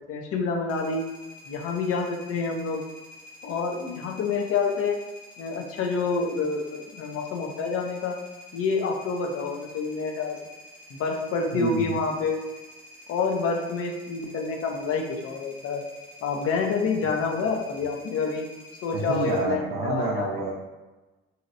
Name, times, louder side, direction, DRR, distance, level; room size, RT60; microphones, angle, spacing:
voice 1, 0.1-1.0 1.5-2.8 3.4-5.0 5.4-8.2 8.5-10.4 10.9-12.4 13.1-15.8 16.2-18.4 18.8-20.3, left 4 dB, 45° left, 3 dB, 0.6 m, -27 dB
sound 1, 0.7-19.4, left 1 dB, 80° left, 0.9 m, -48 dB
voice 2, 11.5-11.9 17.4-17.5 18.9-20.5, right 4 dB, 60° right, -4 dB, 0.6 m, -29 dB
2.9 x 2.7 x 2.6 m, 1.1 s
figure-of-eight pair, 50°, 32 cm